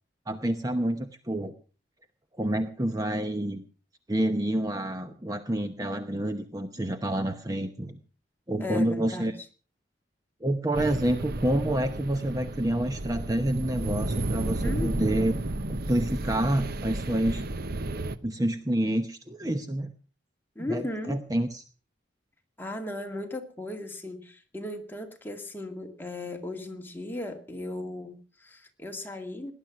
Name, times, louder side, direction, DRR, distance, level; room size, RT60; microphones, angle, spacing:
voice 1, 0.3-1.5 2.4-3.6 4.1-8.0 8.5-9.3 10.4-15.3 15.7-17.4 18.2-19.9 20.6-21.6, right 1 dB, 20° right, 8 dB, 0.9 m, -28 dB
voice 2, 8.6-9.3 14.6-15.3 20.6-21.2 22.6-29.5, left 2 dB, 10° left, 3 dB, 2.1 m, -36 dB
sound 1, 10.7-18.2, right 2 dB, 55° right, 0.9 m, -32 dB
18.5 x 11.0 x 6.0 m, 0.40 s
head